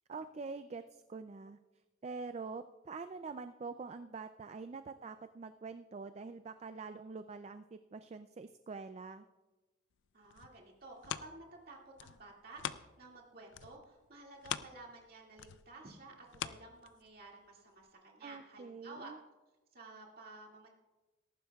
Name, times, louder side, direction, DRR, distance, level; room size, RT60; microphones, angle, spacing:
voice 1, 0.1-1.6 2.0-9.3 18.2-19.2, right 4 dB, 35° right, 10 dB, 0.3 m, -45 dB
sound 1, 10.0-13.2 13.5-17.3 17.8-17.9, left 9 dB, 70° left, 0.4 m, -44 dB
voice 2, 10.1-19.1 19.7-20.7, right 2 dB, 50° right, -1 dB, 2.2 m, -53 dB
18.0 x 14.0 x 2.4 m, 1.2 s
head